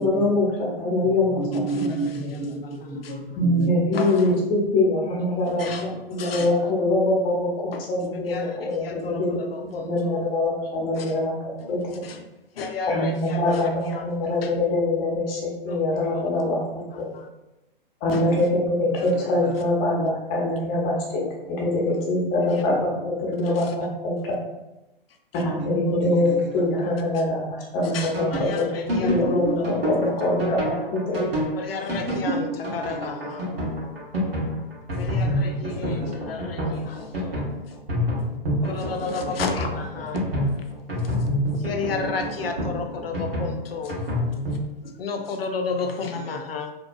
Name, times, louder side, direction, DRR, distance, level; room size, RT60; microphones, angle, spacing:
voice 1, 0.0-1.9 3.4-11.3 11.7-11.8 12.9-17.1 18.0-24.3 25.3-28.7 29.0-31.2, left 2 dB, 30° left, -2 dB, 0.7 m, -24 dB
voice 2, 1.0-3.8 6.4-6.5 18.3-18.5 19.0-19.5 26.0-26.9 32.6-33.1 35.6-36.3 39.3-39.4 41.9-42.4 42.8-43.1 46.0-46.4, right 2 dB, 50° right, -2 dB, 0.8 m, -33 dB
voice 3, 3.9-4.4 5.5-6.5 7.7-7.8 8.2-10.2 11.0-11.2 11.6-11.7 12.0-12.2 12.5-14.5 15.7-16.5 16.9-17.3 18.1-18.2 19.0-19.1 22.5-22.6 23.4-23.7 24.2-24.3 25.8-26.0 26.8-26.9 27.8-30.5 31.5-33.5 33.8-34.1 35.0-37.5 38.6-40.2 41.0-41.2 41.5-44.0 45.0-46.7, left 4 dB, 80° left, 4 dB, 0.5 m, -33 dB
sound 1, 27.8-44.6, equal, 75° right, 1.2 m, -27 dB
2.8 x 2.1 x 2.5 m, 0.98 s
figure-of-eight pair, 115°, 29 cm